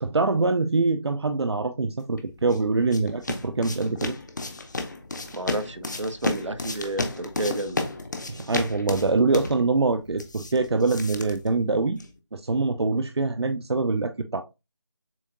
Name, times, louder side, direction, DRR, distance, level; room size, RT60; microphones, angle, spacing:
voice 1, 0.0-4.1 8.3-12.0 12.3-14.4, right 3 dB, 65° right, 0.5 m, -24 dB
sound 1, 2.2-12.2, left 2 dB, 40° left, 0.7 m, -33 dB
voice 2, 5.3-7.8, right 1 dB, 90° right, 0.9 m, -31 dB
7.3 x 2.8 x 2.5 m
figure-of-eight pair, 170°, 15 cm